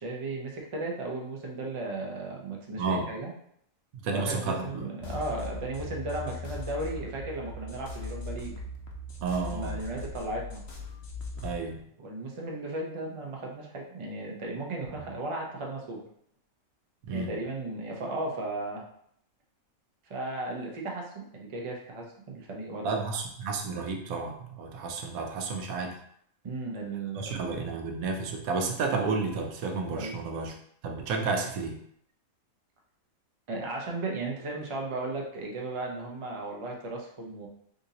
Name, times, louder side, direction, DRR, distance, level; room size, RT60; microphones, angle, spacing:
voice 1, 0.0-3.3 4.1-8.5 9.5-10.6 12.0-16.0 17.1-18.8 20.1-23.0 26.4-27.3 29.9-30.2 33.5-37.5, right 2 dB, 45° right, -1 dB, 0.4 m, -35 dB
voice 2, 2.8-3.1 4.0-4.9 9.2-9.8 11.4-11.8 14.9-15.0 17.1-17.3 22.8-25.9 27.2-30.5 30.8-31.8, right 4 dB, 90° right, 3 dB, 1.1 m, -31 dB
sound 1, 5.0-11.6, left 2 dB, 60° left, 0.8 m, -39 dB
3.8 x 2.6 x 2.7 m, 0.68 s
omnidirectional pair, 1.4 m